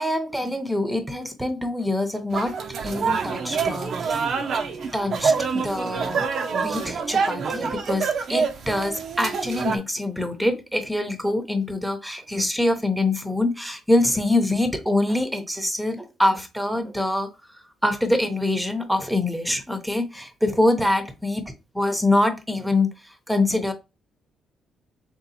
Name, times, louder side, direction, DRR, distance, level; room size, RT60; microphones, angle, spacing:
voice 1, 0.0-2.6 2.8-4.3 4.9-6.2 6.5-17.3 17.8-21.4 21.7-23.7, left 1 dB, 5° right, 0.8 m, -24 dB
sound 1, 2.3-9.8, right 5 dB, 60° right, 0.6 m, -26 dB
3.5 x 2.8 x 4.0 m
cardioid pair, 90°, 0 cm